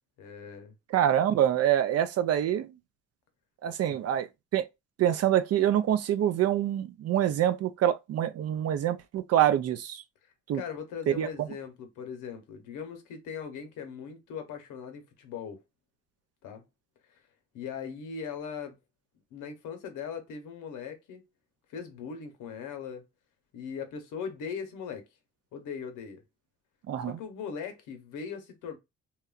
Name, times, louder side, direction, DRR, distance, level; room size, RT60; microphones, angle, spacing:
voice 1, 0.2-0.7 3.9-4.0 10.2-15.6 16.4-16.6 17.1-17.2 17.5-18.8 19.3-21.3 21.7-23.0 23.5-25.0 25.5-26.2 27.0-28.8, left 6 dB, 85° left, 0.8 m, -39 dB
voice 2, 0.9-2.7 3.6-4.7 5.0-10.0 10.5-10.6 11.1-11.3 26.9-27.2, right 11 dB, 55° right, 0.4 m, -26 dB
2.9 x 2.2 x 2.3 m
cardioid pair, 90°, 30 cm